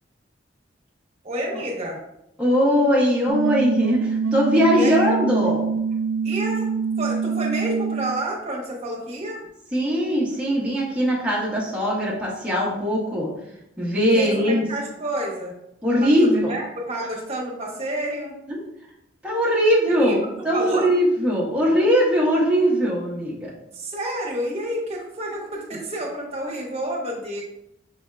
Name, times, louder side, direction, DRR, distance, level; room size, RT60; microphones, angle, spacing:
voice 1, 1.2-2.0 4.7-5.1 6.2-6.7 7.0-9.4 14.1-15.5 16.0-18.3 20.0-20.1 20.5-20.9 23.7-27.4, right 1 dB, 35° right, -1 dB, 1.0 m, -29 dB
voice 2, 2.4-5.7 9.7-13.3 13.8-14.6 15.8-16.5 18.5-18.6 19.2-23.5, equal, 5° right, -7 dB, 0.9 m, -20 dB
sound 1, 3.3-8.2, right 5 dB, 75° right, 0.5 m, -25 dB
5.4 x 3.4 x 2.4 m, 0.83 s
head